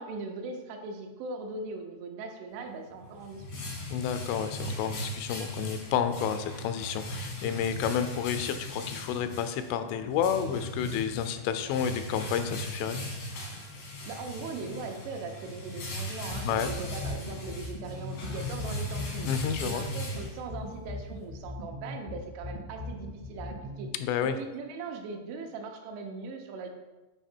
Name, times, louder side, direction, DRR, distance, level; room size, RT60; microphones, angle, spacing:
voice 1, 0.0-3.7 14.1-19.3 19.6-23.9 24.2-26.7, right 3 dB, 80° right, 3 dB, 3.3 m, -40 dB
sound 1, 2.9-20.8, left 1 dB, 70° left, 1.4 m, -38 dB
voice 2, 3.9-13.0 16.4-16.7 19.3-19.9 24.0-24.4, left 8 dB, 85° left, 9 dB, 3.0 m, -30 dB
sound 2, 16.3-23.9, left 1 dB, 65° right, 0.9 m, -39 dB
9.0 x 4.8 x 4.4 m, 1.1 s
omnidirectional pair, 5.5 m